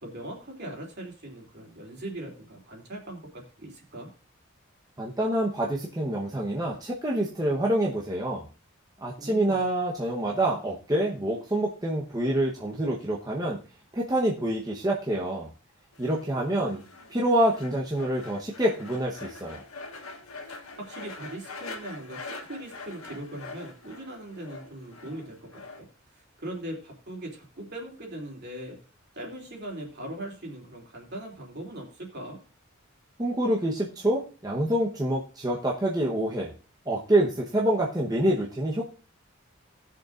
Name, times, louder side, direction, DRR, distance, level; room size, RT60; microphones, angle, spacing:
voice 1, 0.0-4.1 9.2-9.6 20.8-25.9 26.4-28.8 29.1-32.4, right 1 dB, 50° right, 0 dB, 3.0 m, -40 dB
voice 2, 5.0-8.4 9.0-13.6 13.9-15.5 16.0-16.8 17.1-19.6 33.2-36.5 36.9-38.9, right 1 dB, 20° right, -3 dB, 1.0 m, -26 dB
sound 1, 15.9-25.8, left 3 dB, 90° left, 1.6 m, -44 dB
18.5 x 6.6 x 2.5 m, 0.36 s
head